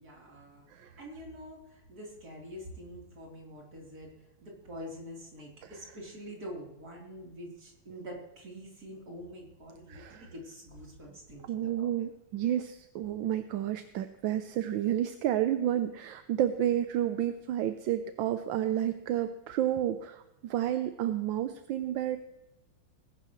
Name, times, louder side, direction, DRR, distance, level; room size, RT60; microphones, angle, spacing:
voice 1, 0.0-0.7 1.0-4.1 4.4-11.9, equal, 45° right, -2 dB, 4.1 m, -45 dB
voice 2, 9.9-10.3 11.5-22.2, right 11 dB, 75° right, 9 dB, 1.4 m, -31 dB
20.5 x 11.5 x 3.1 m, 0.94 s
omnidirectional pair, 2.3 m